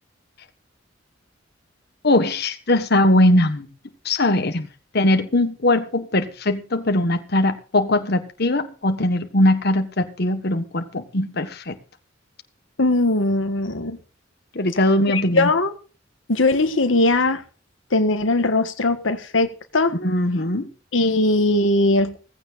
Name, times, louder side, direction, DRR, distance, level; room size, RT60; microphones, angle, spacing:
voice 1, 2.0-3.7 4.0-4.7 4.9-11.7 14.5-15.5 19.9-20.7, left 1 dB, 55° left, 1.5 m, -20 dB
voice 2, 12.8-14.0 15.1-15.7 16.3-17.4 17.9-19.5 19.7-20.0 20.9-22.2, left 2 dB, 85° left, 1.6 m, -19 dB
17.0 x 15.5 x 2.6 m
head